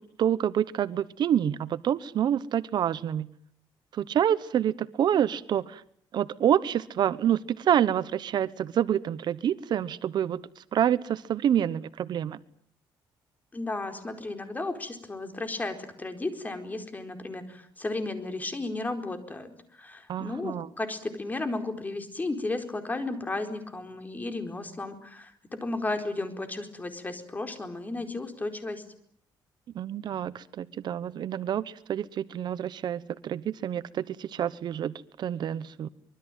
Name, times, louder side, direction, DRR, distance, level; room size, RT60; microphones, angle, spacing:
voice 1, 0.2-3.3 3.9-5.8 6.1-12.4 20.1-20.7 29.7-35.9, right 10 dB, 60° right, 16 dB, 1.0 m, -27 dB
voice 2, 13.5-28.8, left 2 dB, 20° left, 7 dB, 4.4 m, -34 dB
25.0 x 23.0 x 9.3 m, 0.65 s
cardioid pair, 110°, 8 cm